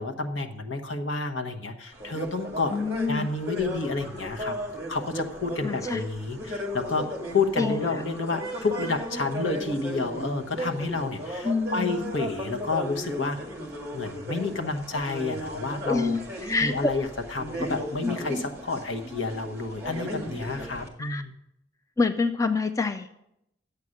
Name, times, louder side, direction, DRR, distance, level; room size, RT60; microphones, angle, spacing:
voice 1, 0.0-2.8 3.1-4.5 4.9-13.4 13.9-16.2 16.6-21.3, left 3 dB, 75° left, 6 dB, 1.1 m, -30 dB
sound 1, 1.9-20.9, equal, 15° right, 1.9 m, -36 dB
voice 2, 2.7-3.3 5.6-6.0 7.6-7.9 11.4-12.1 15.8-16.9 18.0-18.1 21.0-21.2 22.0-23.1, left 4 dB, 15° left, 8 dB, 0.3 m, -27 dB
11.0 x 8.4 x 6.4 m, 0.83 s
head